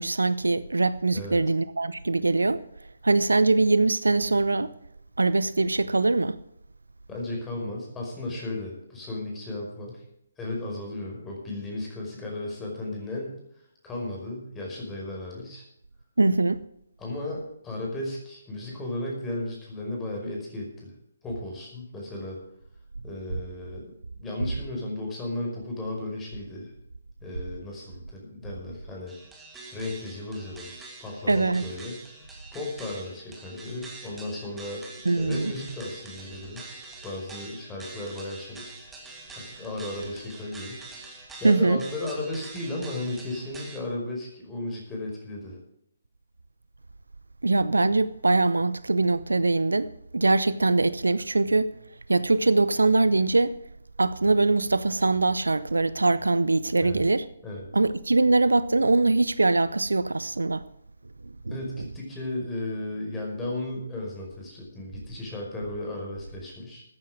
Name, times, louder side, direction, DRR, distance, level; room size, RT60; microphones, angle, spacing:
voice 1, 0.0-2.6 3.0-4.7 5.2-6.4 16.2-16.6 31.3-31.6 35.0-35.5 41.4-41.8 47.4-51.7 52.1-53.5 54.0-57.3 57.7-60.6 61.5-61.6, right 3 dB, 75° right, 0.7 m, -22 dB
voice 2, 7.1-10.0 10.4-13.4 13.8-15.6 17.0-20.9 21.2-22.4 23.0-23.9 24.2-26.7 27.2-29.1 29.7-30.7 31.0-32.0 32.5-34.8 35.2-38.7 39.3-40.8 41.4-45.6 56.8-57.0 57.4-57.6 61.5-66.8, left 2 dB, 10° left, 5.2 m, -35 dB
sound 1, 29.1-43.8, right 3 dB, 5° right, 2.7 m, -45 dB
14.0 x 9.7 x 6.2 m
figure-of-eight pair, 140°, 0 cm